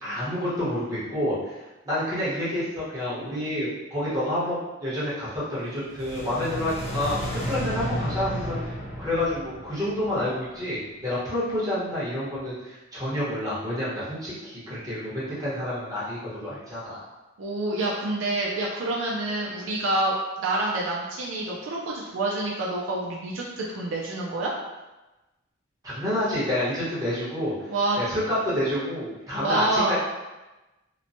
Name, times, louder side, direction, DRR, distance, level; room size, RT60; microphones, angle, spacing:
voice 1, 0.0-1.6 1.8-7.2 7.5-8.6 9.0-17.1 25.8-29.9, left 1 dB, 20° right, -10 dB, 1.0 m, -28 dB
sound 1, 5.7-10.9, equal, 35° left, 0.4 m, -33 dB
voice 2, 17.4-24.5 27.7-28.0 29.4-29.9, right 2 dB, 75° right, -3 dB, 0.4 m, -27 dB
3.0 x 2.1 x 2.6 m, 1.1 s
head